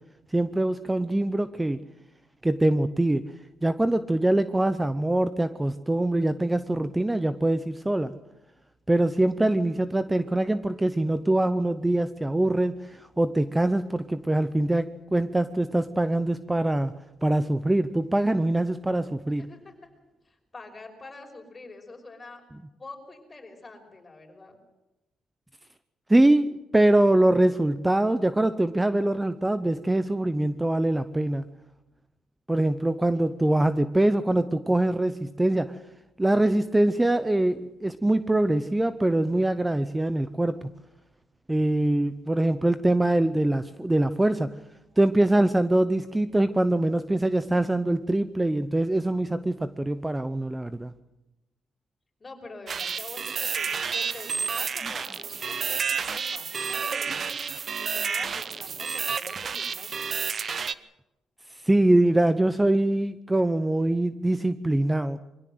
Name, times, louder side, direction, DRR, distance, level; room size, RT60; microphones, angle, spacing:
voice 1, 0.3-1.8 2.4-3.3 3.6-8.1 8.9-16.9 17.2-19.5 26.1-31.4 32.5-35.8 36.2-40.7 41.5-44.6 45.0-50.9 61.5-65.2, right 1 dB, 10° right, 13 dB, 0.7 m, -23 dB
voice 2, 19.4-19.7 20.2-22.4 22.8-24.6 52.2-57.3 57.8-60.2, left 3 dB, 25° left, 3 dB, 5.6 m, -46 dB
sound 1, 52.7-60.7, right 6 dB, 45° right, 0.9 m, -30 dB
23.5 x 16.5 x 7.9 m, 0.98 s
cardioid pair, 90°, 0 cm